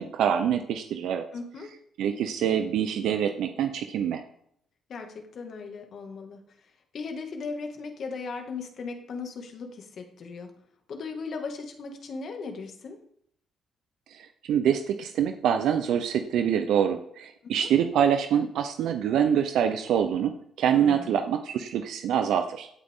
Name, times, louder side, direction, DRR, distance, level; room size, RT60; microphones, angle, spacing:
voice 1, 0.0-1.2 2.0-4.2 14.1-22.7, right 8 dB, 80° right, 7 dB, 0.8 m, -25 dB
voice 2, 1.3-1.7 4.9-6.4 6.9-10.5 10.9-13.0 17.4-17.7 20.7-21.2, left 4 dB, 60° left, 4 dB, 2.2 m, -37 dB
16.5 x 8.2 x 3.8 m, 0.71 s
cardioid pair, 90°, 0 cm